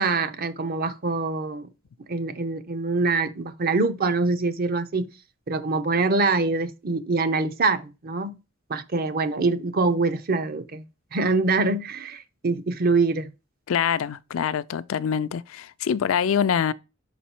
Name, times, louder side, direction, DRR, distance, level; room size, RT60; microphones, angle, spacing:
voice 1, 0.0-1.7 2.1-5.1 5.5-8.3 8.7-10.8 11.1-13.3, right 3 dB, 45° right, 0.6 m, -24 dB
voice 2, 13.7-16.7, left 7 dB, 80° left, 0.4 m, -25 dB
5.5 x 4.1 x 4.3 m
head